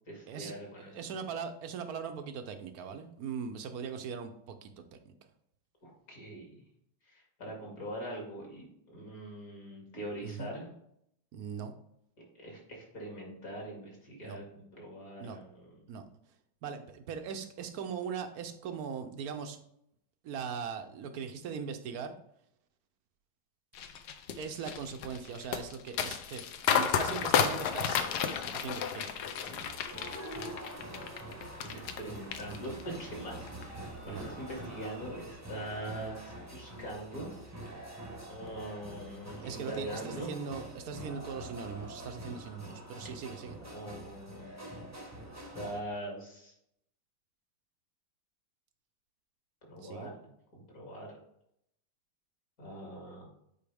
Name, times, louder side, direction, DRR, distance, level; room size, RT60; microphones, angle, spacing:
voice 1, 0.1-0.9 5.8-6.5 7.1-10.7 12.3-15.8 30.9-31.1 31.4-37.3 38.3-40.3 43.6-44.9 45.5-46.5 49.7-51.1 52.6-53.3, right 1 dB, 45° left, -1 dB, 2.7 m, -43 dB
voice 2, 0.9-5.1 10.2-10.5 11.3-11.7 14.2-14.4 15.2-15.4 15.9-16.1 16.6-19.6 20.2-22.1 24.4-26.4 26.7-28.1 28.5-29.0 34.0-34.2 39.4-43.6 49.8-50.1, right 6 dB, 65° right, 7 dB, 0.9 m, -40 dB
sound 1, 23.8-32.0 32.3-33.0 33.4-33.6, left 7 dB, 70° left, 1.1 m, -32 dB
sound 2, 29.3-45.8, right 1 dB, 15° right, 0.7 m, -45 dB
9.1 x 4.8 x 3.4 m, 0.74 s
omnidirectional pair, 2.1 m